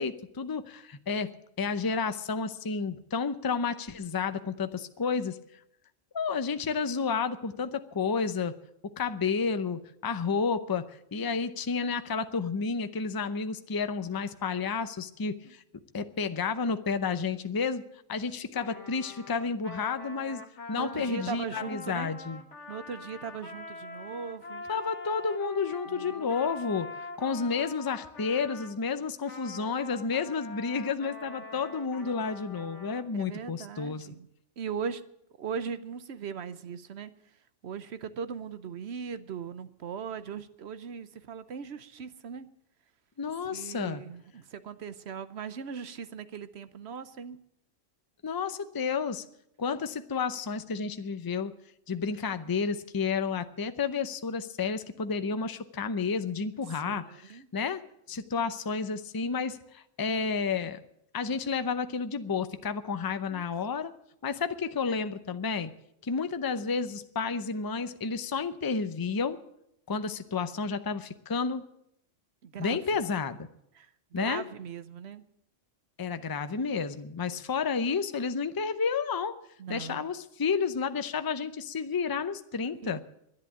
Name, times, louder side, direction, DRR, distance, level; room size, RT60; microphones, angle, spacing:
voice 1, 0.0-1.3 1.6-5.4 6.1-8.5 9.0-15.6 15.9-17.8 18.1-20.4 20.7-22.4 24.7-26.9 27.2-34.1 43.2-44.0 48.2-49.2 49.6-51.5 51.9-57.8 58.1-60.8 61.1-63.9 64.2-65.7 66.0-69.4 69.9-71.6 72.6-73.4 74.1-74.4 76.0-79.4 79.7-83.0, left 5 dB, 25° left, 11 dB, 0.5 m, -31 dB
Trumpet, 18.5-28.8 29.3-33.0, left 4 dB, 65° left, 1.9 m, -44 dB
voice 2, 20.7-22.1 22.7-24.6 25.9-26.3 33.1-34.3 34.6-35.0 35.4-37.1 37.6-42.5 43.5-47.4 56.7-57.5 63.3-63.4 72.4-73.0 73.7-75.2 79.6-80.1 82.8-83.0, right 6 dB, 60° right, 13 dB, 1.0 m, -39 dB
11.0 x 10.5 x 9.9 m, 0.76 s
omnidirectional pair, 1.3 m